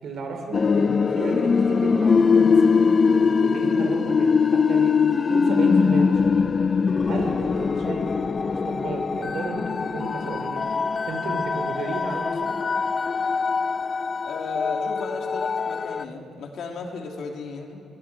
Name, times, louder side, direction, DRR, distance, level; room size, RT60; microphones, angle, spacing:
voice 1, 0.0-5.0 5.3-6.2 7.0-10.6 11.1-12.6, right 3 dB, 65° right, 3 dB, 4.2 m, -33 dB
sound 1, 0.5-16.0, left 5 dB, 40° left, 0.5 m, -22 dB
voice 2, 14.2-17.8, left 5 dB, 70° left, 2 dB, 2.9 m, -34 dB
24.0 x 17.5 x 6.2 m, 2.6 s
cardioid pair, 90°, 0 cm